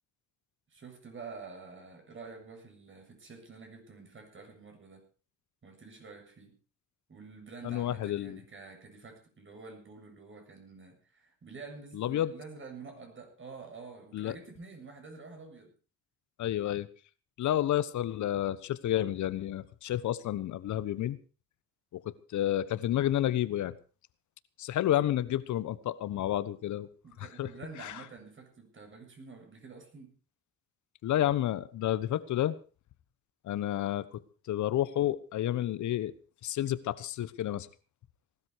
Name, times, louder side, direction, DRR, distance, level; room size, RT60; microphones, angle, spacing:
voice 1, 0.7-5.1 5.6-6.6 7.1-15.7 27.0-30.2, right 4 dB, 40° right, 3 dB, 7.4 m, -48 dB
voice 2, 7.6-8.4 12.0-12.3 14.1-14.3 16.4-16.9 17.4-21.2 21.9-23.7 24.6-26.9 27.4-27.5 27.8-27.9 31.0-32.6 33.5-34.0 34.5-36.1 36.4-37.7, left 12 dB, 75° left, 16 dB, 1.2 m, -30 dB
19.0 x 13.0 x 4.8 m, 0.36 s
cardioid pair, 90°, 30 cm